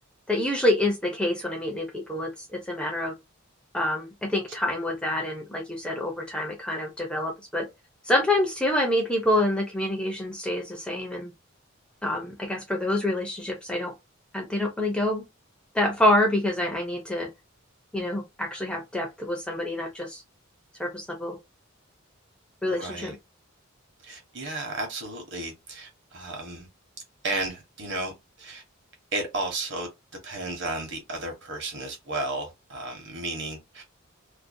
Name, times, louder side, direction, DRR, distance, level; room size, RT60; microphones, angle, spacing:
voice 1, 0.3-3.1 3.7-7.7 8.0-11.3 12.0-13.9 14.3-15.2 15.7-17.3 17.9-20.2 20.8-21.4 22.6-23.1, left 1 dB, 5° left, 0.4 m, -27 dB
voice 2, 22.7-23.2 24.0-26.7 27.2-28.1 28.4-28.6 29.1-29.9 30.2-33.8, right 2 dB, 55° right, 0.9 m, -33 dB
2.5 x 2.1 x 2.5 m
head